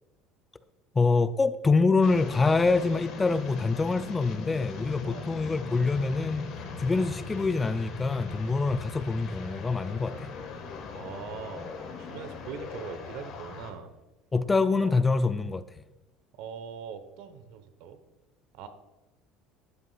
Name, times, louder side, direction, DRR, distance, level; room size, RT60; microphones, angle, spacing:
voice 1, 0.9-6.4 6.8-10.3 14.3-15.6, left 3 dB, 20° left, 0.5 m, -25 dB
sound 1, 2.0-13.7, left 4 dB, 60° left, 1.5 m, -40 dB
voice 2, 10.9-11.7 12.0-13.9 14.7-15.0 16.4-18.0 18.5-18.7, right 7 dB, 70° right, 1.0 m, -41 dB
12.5 x 8.0 x 2.4 m
hypercardioid pair, 80°, 0 cm